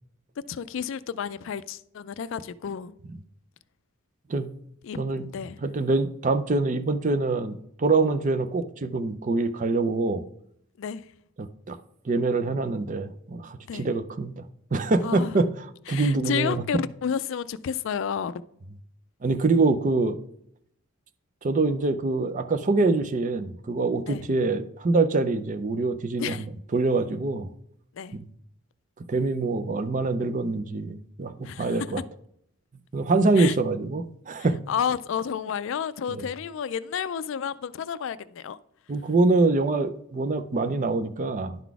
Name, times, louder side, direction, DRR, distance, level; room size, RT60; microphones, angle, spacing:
voice 1, 0.5-2.9 4.8-5.0 5.3-5.6 10.8-11.0 13.7-13.9 15.0-15.4 15.9-18.3 24.1-24.2 26.2-26.4 28.0-28.1 31.4-31.7 33.4-33.5 34.7-38.6, left 7 dB, 60° left, 0.3 m, -31 dB
voice 2, 5.0-5.3 5.6-10.2 11.4-11.8 12.0-14.5 14.7-16.6 19.2-20.2 21.4-27.5 28.1-28.2 29.1-32.0 32.9-34.6 36.1-36.3 38.9-41.6, right 3 dB, 35° right, 0.5 m, -25 dB
10.5 x 4.0 x 4.7 m
head